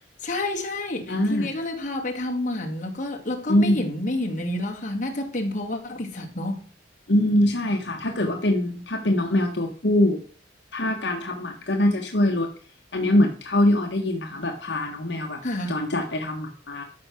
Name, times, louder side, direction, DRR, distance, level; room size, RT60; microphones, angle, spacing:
voice 1, 0.2-6.7 15.4-15.8, left 1 dB, 40° left, 2.4 m, -29 dB
voice 2, 1.1-1.5 3.5-3.8 7.1-10.2 10.7-12.5 12.9-15.4 15.7-16.8, left 1 dB, 65° left, 1.4 m, -23 dB
13.0 x 5.7 x 6.3 m
head